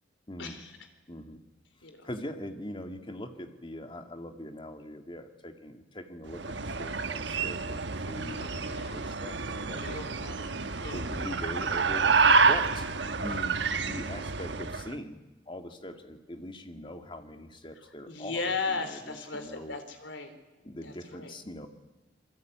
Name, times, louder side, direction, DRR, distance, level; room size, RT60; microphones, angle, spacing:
voice 1, 0.4-0.7 1.8-2.1 8.3-9.1 9.8-11.0 18.1-20.3 20.8-21.3, left 4 dB, 80° left, 8 dB, 3.7 m, -37 dB
voice 2, 1.1-1.4 2.0-10.0 10.9-12.9 13.2-15.2 15.5-19.8 20.6-21.7, left 1 dB, 25° left, 6 dB, 2.1 m, -42 dB
sound 1, 6.3-14.9, right 4 dB, 70° right, 1.2 m, -28 dB
27.5 x 22.5 x 9.3 m, 1.1 s
head